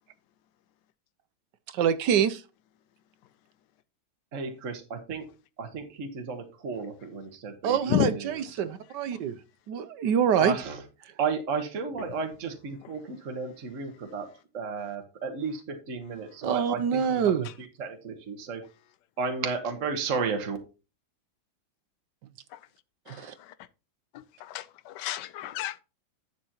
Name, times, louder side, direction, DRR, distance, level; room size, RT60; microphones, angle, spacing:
voice 1, 1.7-2.4 7.6-9.4 9.7-10.5 16.4-17.5 23.1-23.3, right 8 dB, 70° right, 1.2 m, -26 dB
voice 2, 4.3-5.2 5.6-7.8 8.1-8.2 8.6-8.7 10.4-10.7 11.2-14.3 14.5-17.2 17.8-18.6 19.2-20.6, right 5 dB, 40° right, 1.6 m, -33 dB
voice 3, 23.1-23.5 24.1-25.8, left 12 dB, 70° left, 1.2 m, -31 dB
11.5 x 7.5 x 2.9 m
omnidirectional pair, 2.2 m